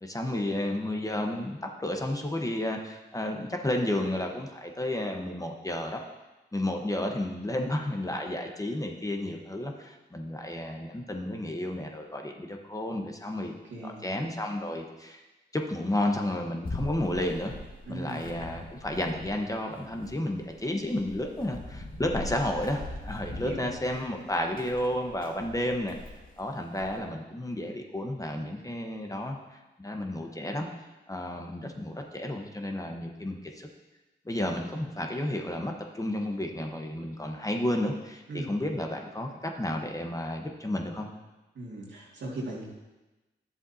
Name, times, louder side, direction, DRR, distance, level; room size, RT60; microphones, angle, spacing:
voice 1, 0.0-6.0 6.5-13.5 13.8-15.2 15.5-17.5 17.9-26.0 26.4-30.7 31.1-33.7 34.2-41.1, left 1 dB, 20° left, 2 dB, 1.2 m, -32 dB
voice 2, 13.7-14.1 17.9-18.3 23.3-23.7 38.3-38.5 41.5-42.6, right 1 dB, 80° right, -4 dB, 2.3 m, -38 dB
sound 1, 16.6-19.5 19.7-27.0, left 2 dB, 50° left, 1.8 m, -42 dB
11.0 x 7.2 x 2.8 m, 1.1 s
cardioid pair, 50°, 19 cm